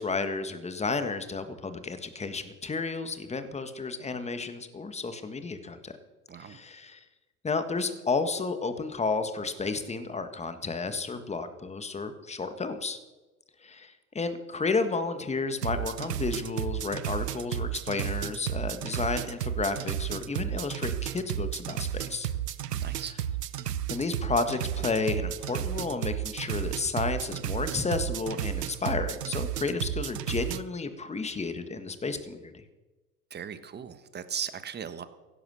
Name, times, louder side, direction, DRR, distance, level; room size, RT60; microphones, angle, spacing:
voice 1, 0.0-5.9 6.4-7.0 7.4-13.0 13.6-22.3 22.9-23.0 23.9-32.6, left 4 dB, 15° left, 10 dB, 1.7 m, -32 dB
sound 1, 15.6-30.6, right 10 dB, 85° right, 0.9 m, -33 dB
voice 2, 22.8-23.1 33.3-35.0, right 8 dB, 20° right, 12 dB, 1.3 m, -37 dB
16.0 x 11.5 x 6.5 m, 1.1 s
hypercardioid pair, 95°, 47 cm